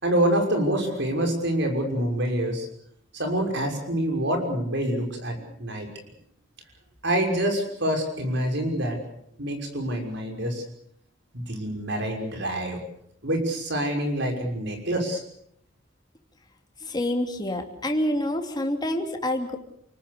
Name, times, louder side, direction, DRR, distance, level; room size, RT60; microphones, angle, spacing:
voice 1, 0.0-2.7 3.1-5.9 7.0-9.0 9.4-10.6 11.3-12.8 13.2-15.2, right 1 dB, 65° right, 4 dB, 6.2 m, -26 dB
voice 2, 16.8-19.6, left 1 dB, 20° left, 3 dB, 2.9 m, -27 dB
29.5 x 19.0 x 6.9 m, 0.71 s
head